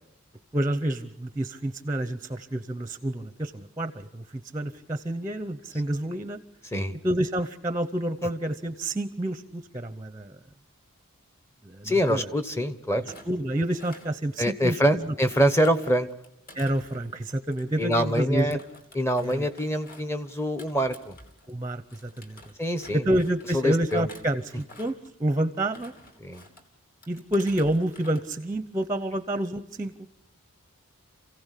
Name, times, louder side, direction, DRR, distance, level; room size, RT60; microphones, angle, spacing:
voice 1, 0.5-6.4 7.0-10.4 11.6-12.3 13.3-15.1 16.5-18.6 19.2-19.5 21.5-22.4 22.9-24.9 25.2-25.9 27.1-29.9, right 1 dB, 15° right, 11 dB, 0.8 m, -28 dB
voice 2, 11.8-13.1 14.4-16.1 17.8-18.6 18.9-21.2 22.6-23.0 23.5-24.1 26.2-26.4, equal, 10° left, 11 dB, 1.0 m, -25 dB
Thump thud, 13.0-14.8 15.2-21.6 21.9-23.5 23.9-25.1 25.6-26.6 27.0-28.2 28.5-28.9, left 1 dB, 40° left, 3.0 m, -51 dB
28.5 x 16.0 x 8.3 m, 0.87 s
head